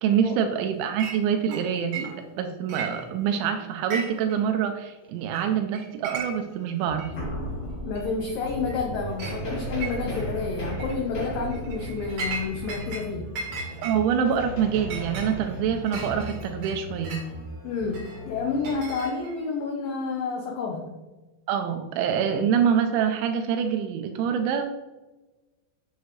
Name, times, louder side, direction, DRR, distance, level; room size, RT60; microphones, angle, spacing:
voice 1, 0.0-2.1 2.4-7.1 13.8-17.2 21.5-24.7, right 8 dB, 85° right, 6 dB, 3.0 m, -25 dB
Chink clink, 1.0-1.2 1.5-2.4 2.7-3.4 3.8-4.4 4.6-4.7 5.3-5.5 5.7-6.6 7.0-7.1 8.0-8.1 8.5-8.8 9.2-9.4 9.8-10.3 10.7-11.0 11.5-13.1 13.4-17.3 17.9-19.4, right 4 dB, 55° right, 3.1 m, -36 dB
sound 1, 6.4-6.5 6.9-18.7, equal, 30° left, 2.8 m, -36 dB
voice 2, 7.8-13.3 17.6-21.0, left 4 dB, 85° left, 1 dB, 1.9 m, -30 dB
8.3 x 8.0 x 3.1 m, 1.1 s
omnidirectional pair, 5.3 m